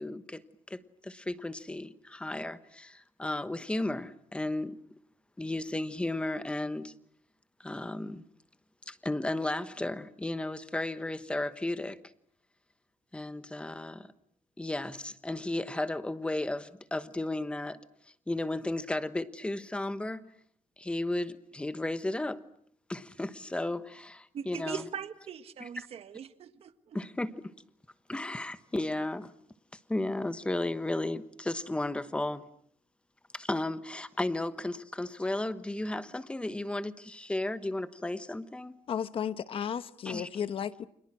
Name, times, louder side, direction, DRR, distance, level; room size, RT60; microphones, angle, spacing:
voice 1, 0.0-4.8 5.4-6.9 7.6-8.2 8.9-12.0 13.1-14.1 14.6-17.8 18.3-20.2 20.8-22.4 22.9-24.8 26.9-27.4 28.1-29.3 29.9-32.5 33.3-38.8 40.0-40.3, left 2 dB, 10° left, 1.1 m, -34 dB
voice 2, 24.3-27.0, right 8 dB, 50° right, 1.5 m, -41 dB
voice 3, 38.9-40.9, left 8 dB, 45° left, 1.1 m, -34 dB
30.0 x 27.0 x 6.3 m
cardioid pair, 175°, 13 cm